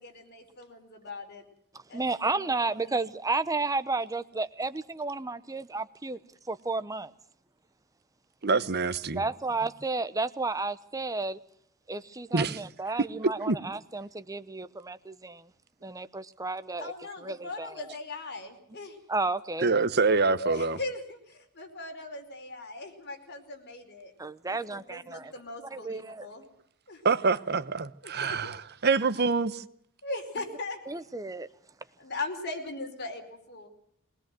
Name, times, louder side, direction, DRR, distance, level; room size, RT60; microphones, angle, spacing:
voice 1, 0.0-1.4 1.9-3.0 16.8-19.0 20.4-24.1 24.5-26.4 26.9-27.0 28.0-28.4 30.0-30.8 32.0-33.7, left 2 dB, 55° left, 4.9 m, -39 dB
voice 2, 1.7-6.2 6.5-7.1 9.1-11.4 11.9-15.5 15.8-16.9 17.2-17.9 19.1-19.7 24.2-25.3 25.7-26.3 30.9-31.5, right 3 dB, 15° right, 0.9 m, -32 dB
voice 3, 8.4-9.2 12.3-12.6 13.5-13.6 19.6-20.8 27.0-29.6, right 4 dB, 50° right, 1.1 m, -26 dB
21.0 x 20.0 x 7.7 m
head